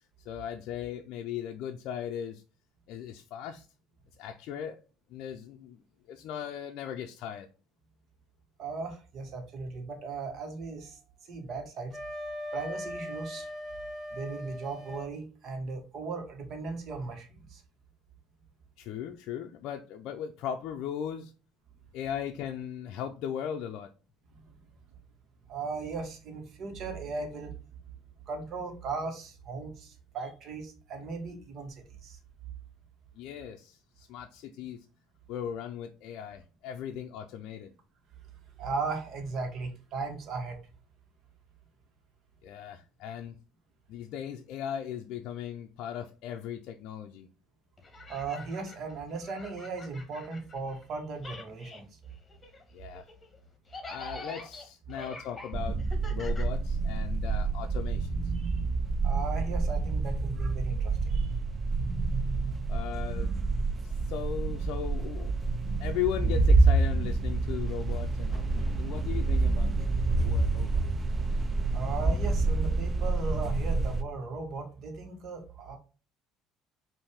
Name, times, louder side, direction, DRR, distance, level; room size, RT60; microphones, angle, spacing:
voice 1, 0.2-2.4 2.9-3.7 4.2-4.8 5.1-5.8 6.1-7.5 18.8-21.3 21.9-23.9 33.1-34.9 35.3-37.7 42.4-43.4 43.9-47.3 52.7-53.1 53.9-55.8 56.1-58.3 62.7-63.3 63.8-65.3 65.8-69.8 70.2-70.8, left 9 dB, 70° left, 0.4 m, -38 dB
voice 2, 8.6-11.0 11.3-12.0 12.5-13.5 14.1-17.6 24.3-24.5 25.5-27.5 28.3-32.2 38.6-40.6 48.1-51.8 58.3-58.6 59.0-61.3 71.7-75.8, right 4 dB, 55° right, 1.4 m, -37 dB
Wind instrument woodwind instrument, 11.9-15.1, left 1 dB, 10° right, 2.2 m, -39 dB
sound 1, 47.8-50.9 51.1-57.1, left 2 dB, 25° left, 1.4 m, -46 dB
sound 2, 55.5-74.0, right 3 dB, 30° right, 0.6 m, -28 dB
5.3 x 2.6 x 3.5 m
supercardioid pair, 85°, 0 cm